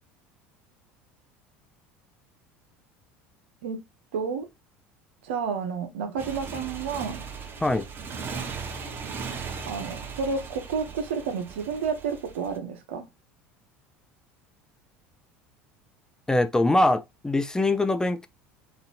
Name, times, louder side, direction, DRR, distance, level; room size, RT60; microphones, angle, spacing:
voice 1, 4.1-4.5 5.2-7.2 9.7-13.0, right 5 dB, 85° right, 1.0 m, -30 dB
Motorcycle, 6.2-12.6, right 5 dB, 35° right, 0.9 m, -38 dB
voice 2, 16.3-18.3, left 2 dB, 10° left, 0.5 m, -23 dB
3.9 x 2.7 x 2.5 m
hypercardioid pair, 85°, 6 cm